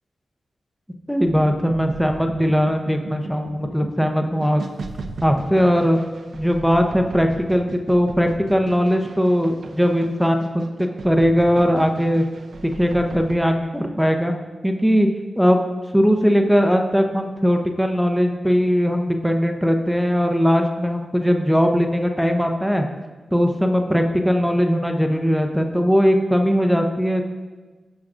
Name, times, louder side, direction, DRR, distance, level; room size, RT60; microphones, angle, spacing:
voice 1, 1.1-4.6 5.2-6.0 6.3-12.2 12.6-14.3 14.6-15.1 15.4-15.6 15.9-22.9 23.3-27.2, equal, ahead, 4 dB, 0.7 m, -19 dB
sound 1, 1.3-13.4, right 3 dB, 70° right, 0.7 m, -37 dB
15.5 x 6.3 x 2.5 m, 1.3 s
wide cardioid pair, 90°, 0 cm